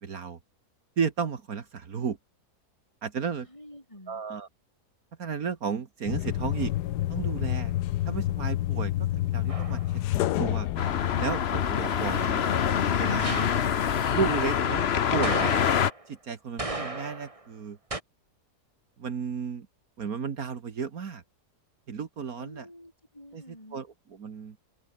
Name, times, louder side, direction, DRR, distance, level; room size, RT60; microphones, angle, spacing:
voice 1, 0.0-0.4 1.0-2.2 3.0-3.5 4.1-4.5 5.2-6.7 7.1-7.7 8.1-9.8 10.4-10.7 11.2-12.4 13.0-13.5 14.1-14.8 15.1-15.5 16.1-17.8 19.0-19.7 20.0-21.2 21.9-22.7 23.3-23.4 23.7-24.6, right 6 dB, 65° right, 2.0 m, -33 dB
voice 2, 3.5-4.2 22.4-23.8, left 1 dB, 20° left, 5.5 m, -49 dB
sound 1, 6.1-11.9, left 14 dB, 85° left, 1.3 m, -29 dB
sound 2, 9.5-9.9 13.2-13.7 15.2-16.1 16.6-17.5 17.9-18.0, right 2 dB, 20° right, 2.2 m, -35 dB
sound 3, 10.8-15.9, left 8 dB, 45° left, 1.0 m, -25 dB
open air
omnidirectional pair, 1.7 m